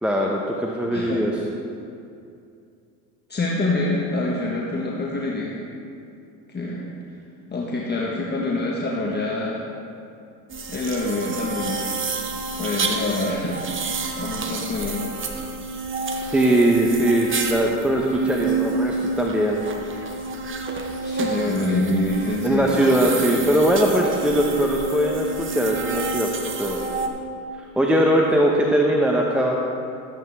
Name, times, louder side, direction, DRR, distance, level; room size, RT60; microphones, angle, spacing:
voice 1, 0.0-1.3 16.3-19.6 22.4-26.3 26.6-26.8 27.6-29.6, right 1 dB, ahead, -1 dB, 0.9 m, -20 dB
voice 2, 0.9-1.2 3.3-5.6 6.5-6.9 7.5-9.6 10.7-11.9 12.6-13.6 14.2-15.1 21.0-23.4, left 2 dB, 20° left, -4 dB, 1.4 m, -26 dB
sound 1, 10.5-27.1, right 3 dB, 25° right, 1.0 m, -29 dB
13.0 x 8.3 x 3.5 m, 2.5 s
hypercardioid pair, 75°, 45 cm